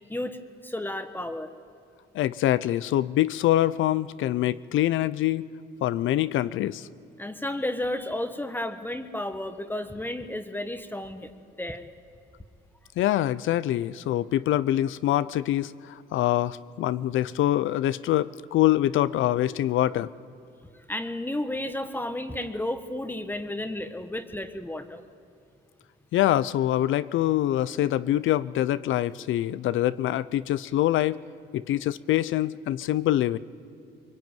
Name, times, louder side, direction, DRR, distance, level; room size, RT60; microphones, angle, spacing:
voice 1, 0.6-1.5 7.2-11.3 11.6-11.8 20.9-25.0, left 1 dB, 10° left, 8 dB, 1.4 m, -32 dB
voice 2, 2.1-5.5 5.8-6.9 13.0-20.1 26.1-31.2 31.5-33.4, left 13 dB, 80° left, 17 dB, 0.7 m, -25 dB
23.5 x 23.0 x 9.2 m, 2.6 s
cardioid pair, 90°, 20 cm